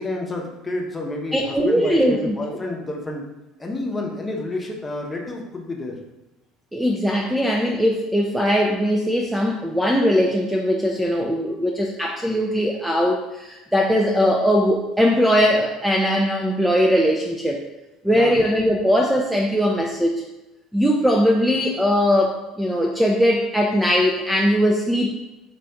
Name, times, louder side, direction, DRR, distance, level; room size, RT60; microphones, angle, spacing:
voice 1, 0.0-3.3 3.6-6.0 18.1-18.3, left 2 dB, 15° left, 0 dB, 0.8 m, -30 dB
voice 2, 1.3-2.3 6.7-17.6 18.0-20.2 20.7-25.1, equal, 5° right, 0 dB, 0.4 m, -20 dB
4.3 x 2.5 x 3.5 m, 1.0 s
figure-of-eight pair, 60°, 0 cm